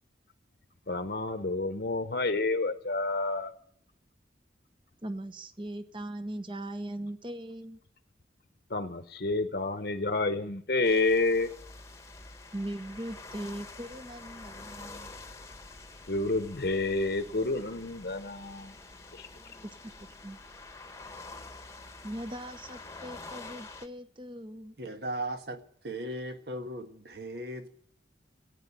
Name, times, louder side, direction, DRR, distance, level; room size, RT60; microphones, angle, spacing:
voice 1, 0.9-3.5 8.7-11.5 16.1-18.7 19.1-19.3, left 3 dB, 60° left, 0.9 m, -29 dB
voice 2, 5.0-7.8 12.5-15.1 20.0-20.4 22.0-24.7, right 1 dB, 30° right, 1.0 m, -40 dB
sound 1, 10.8-23.9, left 3 dB, 15° left, 1.1 m, -47 dB
voice 3, 24.8-27.7, right 1 dB, 70° right, 1.5 m, -37 dB
15.0 x 9.2 x 9.7 m
head